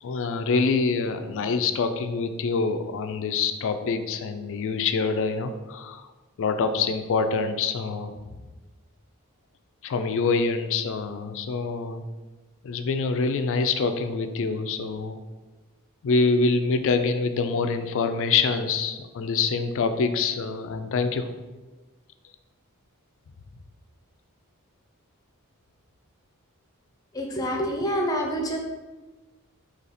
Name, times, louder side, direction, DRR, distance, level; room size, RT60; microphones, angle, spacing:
voice 1, 0.0-6.1 6.4-8.1 9.8-12.0 12.6-15.2 16.0-21.3, left 4 dB, 60° left, 8 dB, 0.4 m, -25 dB
voice 2, 27.1-28.6, equal, 15° left, 0 dB, 0.6 m, -27 dB
4.1 x 2.9 x 4.0 m, 1.2 s
head